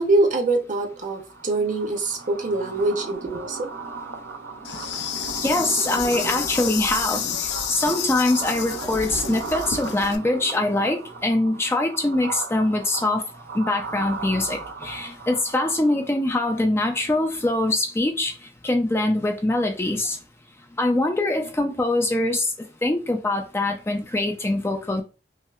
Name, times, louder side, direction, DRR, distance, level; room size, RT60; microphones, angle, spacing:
voice 1, 0.0-3.7, right 2 dB, 45° right, 0.8 m, -24 dB
sound 1, 0.9-16.3, right 4 dB, 90° right, 0.6 m, -37 dB
Insect, 4.6-10.2, left 8 dB, 65° left, 0.5 m, -30 dB
voice 2, 5.4-7.3 7.7-13.2 13.5-18.3 18.6-20.2 20.8-22.5 22.8-25.0, left 2 dB, 15° left, 0.4 m, -23 dB
5.5 x 2.1 x 2.4 m
head